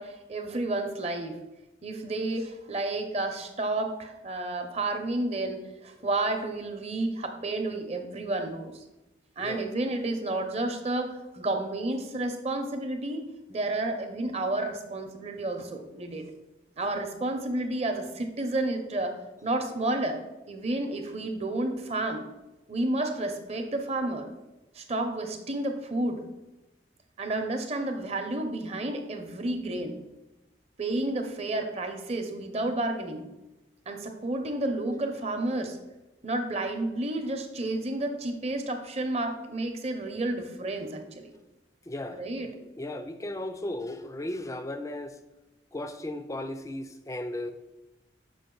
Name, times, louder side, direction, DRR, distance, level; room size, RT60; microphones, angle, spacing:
voice 1, 0.0-1.4 1.8-8.7 9.4-13.2 13.5-16.2 16.8-19.1 19.4-20.2 20.5-22.3 22.7-24.3 24.7-26.2 27.2-30.0 30.8-33.3 33.9-35.8 36.2-41.3 42.1-42.5, right 2 dB, 35° right, 5 dB, 0.8 m, -31 dB
voice 2, 41.9-42.3 42.8-45.2 45.7-47.5, left 1 dB, 15° left, 9 dB, 0.4 m, -35 dB
6.9 x 5.0 x 3.8 m, 0.99 s
head